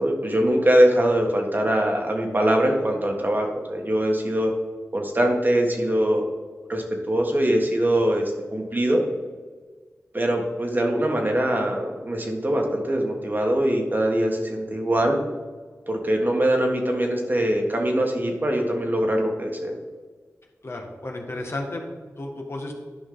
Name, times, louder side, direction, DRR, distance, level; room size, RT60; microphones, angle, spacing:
voice 1, 0.0-4.5 4.9-6.2 6.7-9.0 10.1-15.2 15.9-19.7, right 1 dB, 35° right, 2 dB, 1.6 m, -22 dB
voice 2, 20.6-21.8 22.2-22.7, left 2 dB, 50° left, 2 dB, 1.5 m, -32 dB
11.0 x 5.2 x 3.9 m, 1.4 s
cardioid pair, 50°, 5 cm